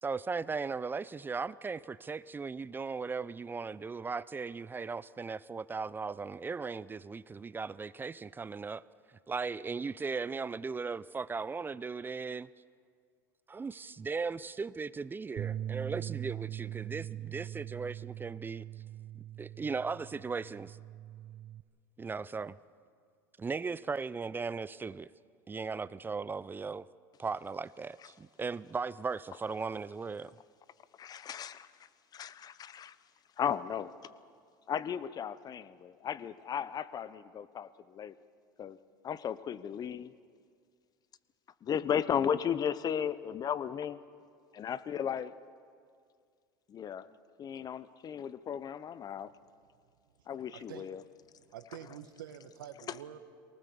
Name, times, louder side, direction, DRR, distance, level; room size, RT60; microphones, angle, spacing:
voice 1, 0.0-8.8 9.3-12.5 13.5-18.6 19.4-20.8 22.0-22.6 23.4-25.1 25.5-26.9 27.2-30.3, right 4 dB, 20° right, 0.5 m, -37 dB
Bass guitar, 15.4-21.6, right 12 dB, 45° right, 0.9 m, -41 dB
voice 2, 31.0-31.7 32.1-33.0 33.4-33.9 34.7-38.1 38.6-38.8 39.0-40.1 41.6-44.0 44.5-45.3 46.7-47.1 47.4-49.3 50.3-51.0 52.9-53.0, left 8 dB, 35° left, 0.9 m, -35 dB
voice 3, 50.5-50.9 51.5-53.2, right 10 dB, 85° right, 1.5 m, -47 dB
24.0 x 19.0 x 7.1 m
hypercardioid pair, 90°, 11 cm